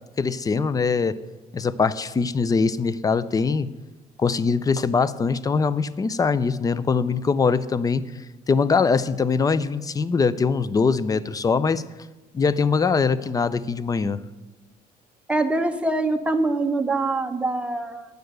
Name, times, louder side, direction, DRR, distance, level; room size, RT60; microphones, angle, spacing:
voice 1, 0.2-1.2 1.5-3.7 4.2-8.0 8.5-11.8 12.3-14.2, left 5 dB, 20° left, 16 dB, 0.5 m, -22 dB
voice 2, 15.3-18.1, right 2 dB, 5° right, 4 dB, 0.9 m, -24 dB
10.0 x 6.6 x 7.9 m, 1.1 s
cardioid pair, 110°, 17 cm